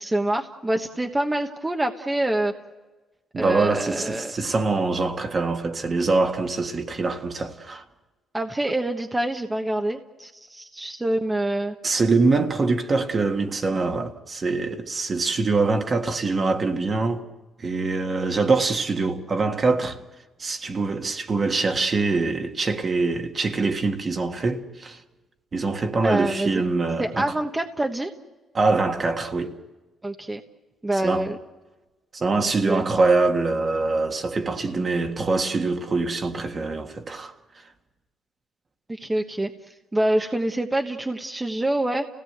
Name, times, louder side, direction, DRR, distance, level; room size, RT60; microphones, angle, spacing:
voice 1, 0.0-2.5 3.4-4.3 8.3-11.8 26.0-26.7 27.0-28.1 30.0-30.4 30.8-31.4 32.7-32.9 38.9-39.5 39.9-42.1, right 1 dB, 15° right, 1.2 m, -26 dB
voice 2, 3.3-7.8 11.8-17.2 17.6-20.0 20.4-25.0 25.5-27.3 28.5-29.6 31.0-31.3 32.1-37.3, right 3 dB, 40° right, 1.7 m, -24 dB
30.0 x 17.0 x 8.0 m
cardioid pair, 90°, 0 cm